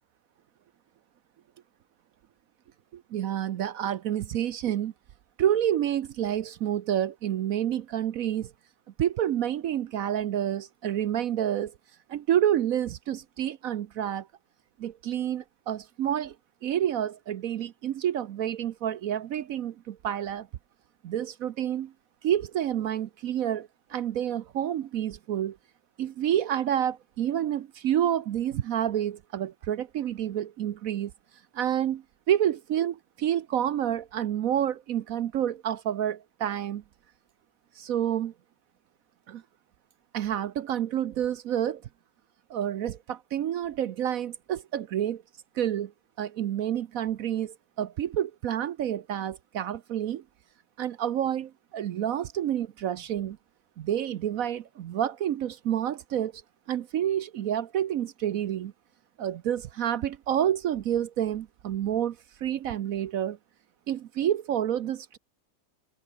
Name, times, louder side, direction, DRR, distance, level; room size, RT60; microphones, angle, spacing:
voice 1, 2.9-4.9 5.4-8.5 9.0-11.7 12.1-14.3 14.8-16.3 16.6-20.5 21.0-21.9 22.2-25.6 26.0-31.1 31.5-36.8 37.8-38.3 39.3-39.4 40.1-41.8 42.5-45.2 45.6-45.9 46.2-50.2 50.8-53.4 53.8-56.3 56.7-58.7 59.2-63.4 63.9-65.2, right 10 dB, 65° right, 1.0 m, -29 dB
omnidirectional pair, 1.8 m